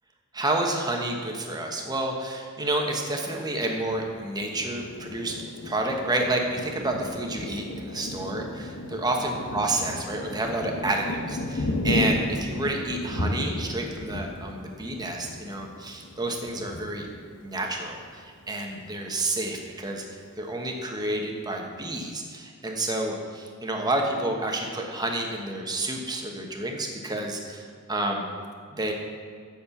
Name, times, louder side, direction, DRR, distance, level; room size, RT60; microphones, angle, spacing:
voice 1, 0.3-17.1 17.4-20.0 20.4-28.3 28.7-28.9, right 2 dB, 20° right, 1 dB, 1.2 m, -29 dB
Thunder, 3.9-18.2 18.7-18.8 19.1-19.7, left 1 dB, 55° left, 0.9 m, -34 dB
8.1 x 6.6 x 7.1 m, 2.1 s
head